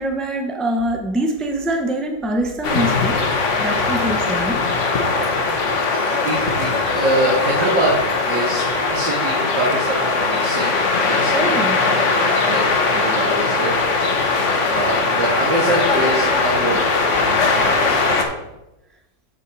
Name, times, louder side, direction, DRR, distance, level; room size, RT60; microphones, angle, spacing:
voice 1, 0.0-3.2 3.6-4.6 11.3-11.8, right 1 dB, ahead, 2 dB, 0.7 m, -23 dB
sound 1, 2.6-18.2, left 3 dB, 45° left, 1.3 m, -20 dB
voice 2, 5.9-7.9 8.3-12.2 12.5-12.6 12.9-13.8 14.6-16.9 17.2-17.4 17.6-18.1, right 1 dB, 85° right, -5 dB, 2.5 m, -24 dB
8.4 x 7.4 x 4.1 m, 0.95 s
omnidirectional pair, 1.9 m